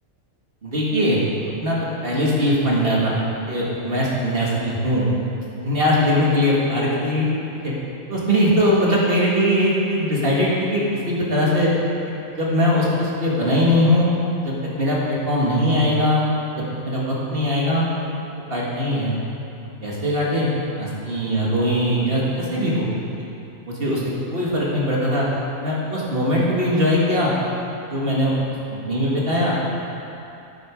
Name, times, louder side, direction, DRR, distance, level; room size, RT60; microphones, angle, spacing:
voice 1, 0.6-1.2 1.6-5.1 5.6-7.3 7.5-7.7 8.1-11.7 12.4-14.1 14.4-16.2 16.8-17.9 18.5-19.1 19.8-20.5 20.8-22.9 23.7-24.0 24.3-25.3 25.6-27.3 27.9-28.3 28.7-29.5, equal, 40° right, -5 dB, 1.8 m, -20 dB
9.3 x 7.8 x 5.0 m, 2.7 s
omnidirectional pair, 1.5 m